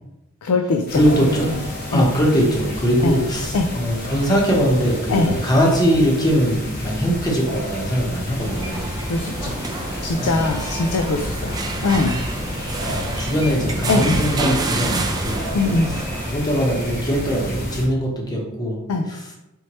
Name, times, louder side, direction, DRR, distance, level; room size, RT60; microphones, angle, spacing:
voice 1, 0.4-1.6 1.9-2.0 3.0-3.2 3.5-3.6 5.1-5.3 9.1-9.6 10.0-12.2 13.9-14.2 15.5-16.0 18.9-19.1, left 3 dB, 85° left, 4 dB, 0.4 m, -21 dB
sound 1, 0.9-17.9, equal, 45° left, 1.1 m, -30 dB
voice 2, 0.9-1.6 1.9-8.9 10.2-10.7 12.8-15.4 15.9-18.8 19.1-19.3, equal, 20° left, -2 dB, 0.9 m, -21 dB
sound 2, 8.4-16.3, right 2 dB, 20° right, 0.4 m, -29 dB
4.5 x 3.1 x 3.0 m, 0.94 s
head